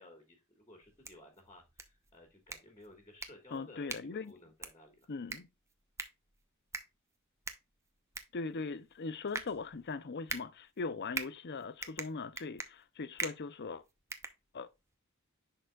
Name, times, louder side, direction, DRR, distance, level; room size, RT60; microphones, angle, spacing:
voice 1, 0.0-5.1, left 1 dB, 15° left, 1.7 m, -56 dB
sound 1, 0.8-14.9, right 3 dB, 15° right, 0.7 m, -45 dB
voice 2, 3.5-4.3 5.1-5.5 8.3-13.8 14.5-14.7, left 4 dB, 50° left, 0.6 m, -40 dB
11.0 x 3.9 x 2.3 m
head